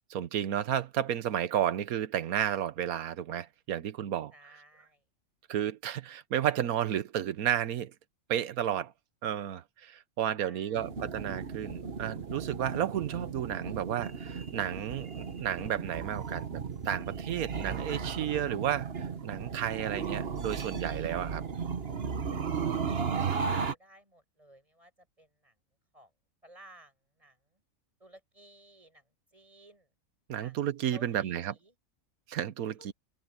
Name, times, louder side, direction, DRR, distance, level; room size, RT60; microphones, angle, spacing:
voice 1, 0.1-4.3 5.5-7.9 8.3-8.9 9.2-21.4 30.3-31.5 32.3-32.9, right 10 dB, 85° right, 1.4 m, -32 dB
voice 2, 4.3-5.0 10.4-10.9 22.6-25.5 25.9-26.1 26.4-27.6 28.0-29.9 30.3-30.6 30.9-31.7 32.8-32.9, right 1 dB, 25° right, 8.0 m, -57 dB
sound 1, 10.7-23.7, right 6 dB, 45° right, 1.4 m, -35 dB
omnidirectional pair, 1.5 m